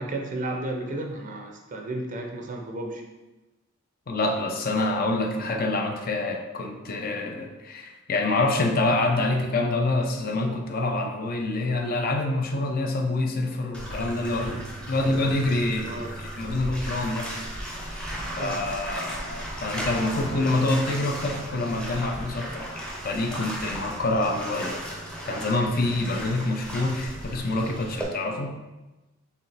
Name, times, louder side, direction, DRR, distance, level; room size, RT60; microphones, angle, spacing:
voice 1, 0.0-3.0 15.8-16.2 18.4-18.6, right 2 dB, 40° right, 2 dB, 0.5 m, -33 dB
voice 2, 4.1-16.1 16.4-17.3 18.4-22.7 23.0-24.8 25.3-28.5, left 2 dB, 45° left, 4 dB, 0.5 m, -26 dB
Bathtub (filling or washing), 13.7-28.0, equal, 5° left, 0.6 m, -35 dB
4.8 x 3.2 x 3.3 m, 1.1 s
head